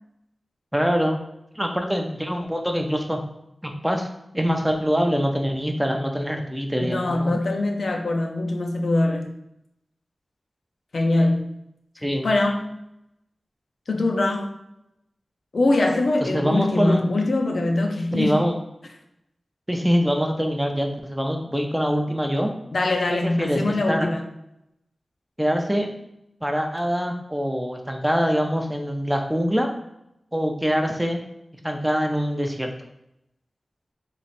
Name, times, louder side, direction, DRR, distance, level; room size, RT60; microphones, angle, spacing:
voice 1, 0.7-1.2 1.6-3.2 3.6-4.1 4.3-7.4 12.0-12.3 16.2-17.0 18.1-18.6 19.7-22.5 23.1-24.1 25.4-25.9 26.4-29.7 30.3-31.2 31.6-32.7, equal, 10° right, 3 dB, 0.5 m, -24 dB
voice 2, 6.8-9.3 10.9-11.5 12.2-12.7 13.9-14.6 15.5-18.4 22.7-24.2, left 2 dB, 75° left, 3 dB, 0.5 m, -23 dB
3.0 x 2.5 x 4.1 m, 0.83 s
wide cardioid pair, 75°, 0 cm